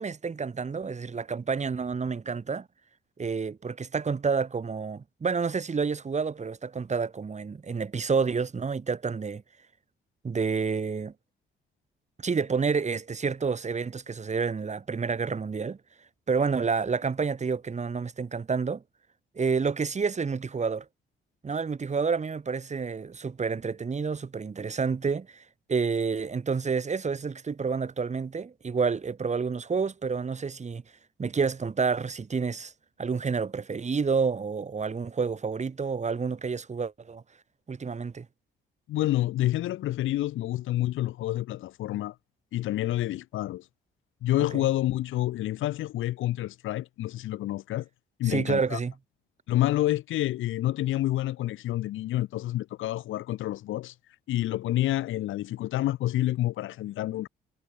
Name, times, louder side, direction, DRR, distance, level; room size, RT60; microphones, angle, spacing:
voice 1, 0.0-2.7 3.2-9.4 10.2-11.1 12.2-15.8 16.3-18.8 19.4-20.9 21.4-25.4 25.7-30.8 31.2-32.7 33.0-37.2 37.7-38.3 44.5-44.7 48.2-48.9, right 5 dB, 35° right, 5.3 m, -29 dB
voice 2, 38.9-42.1 42.5-43.6 44.2-47.9 48.2-48.8 49.5-53.9 54.3-57.3, left 14 dB, 85° left, 2.1 m, -28 dB
cardioid pair, 90°, 20 cm